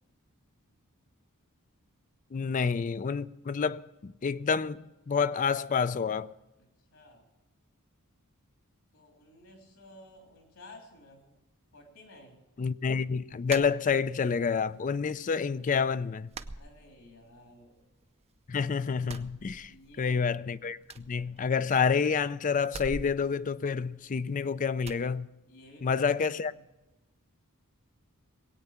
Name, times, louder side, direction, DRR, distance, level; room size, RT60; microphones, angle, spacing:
voice 1, 2.3-6.3 12.6-16.3 18.5-25.3 25.8-26.5, left 5 dB, 35° left, 0.4 m, -29 dB
voice 2, 6.6-7.3 8.9-11.3 11.7-12.4 16.5-17.8 19.7-20.2 25.5-26.0 26.5-26.6, left 1 dB, 70° left, 3.3 m, -53 dB
sound 1, 13.5-14.4 14.7-15.4 15.7-15.8 16.3-17.4 17.7-18.5 18.9-20.1 20.4-20.5 20.8-22.0 22.6-24.3 24.8-25.1, right 3 dB, 30° right, 0.5 m, -44 dB
20.5 x 8.9 x 5.8 m
head